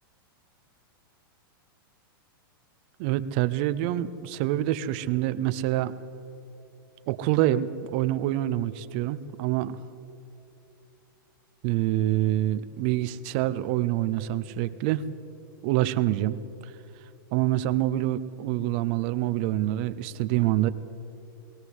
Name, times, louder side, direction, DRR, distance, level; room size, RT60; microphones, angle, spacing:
voice 1, 3.0-5.9 7.1-9.8 11.6-15.0 15.6-16.4 17.3-20.7, right 14 dB, 25° right, 13 dB, 0.5 m, -26 dB
21.0 x 16.0 x 8.0 m, 2.8 s
supercardioid pair, 180°, 12 cm